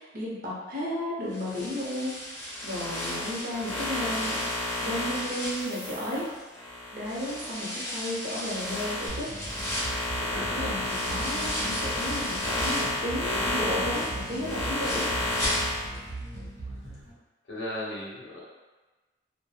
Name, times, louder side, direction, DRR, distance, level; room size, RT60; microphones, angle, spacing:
voice 1, 0.0-2.1 2.6-6.2 6.9-9.3 10.3-15.1, left 1 dB, 55° right, -6 dB, 0.8 m, -33 dB
sound 1, 1.3-6.6 7.0-13.0 13.4-16.1 16.4-16.5 16.9-17.0, equal, 15° left, 0.7 m, -37 dB
sound 2, 2.5-7.6 8.0-15.9, left 2 dB, 40° left, 0.8 m, -32 dB
sound 3, 9.1-17.1, right 2 dB, 85° right, 0.9 m, -39 dB
voice 2, 10.2-11.0 15.9-16.1 17.5-18.4, left 1 dB, 75° left, -5 dB, 0.6 m, -37 dB
2.8 x 2.2 x 2.2 m, 1.2 s
head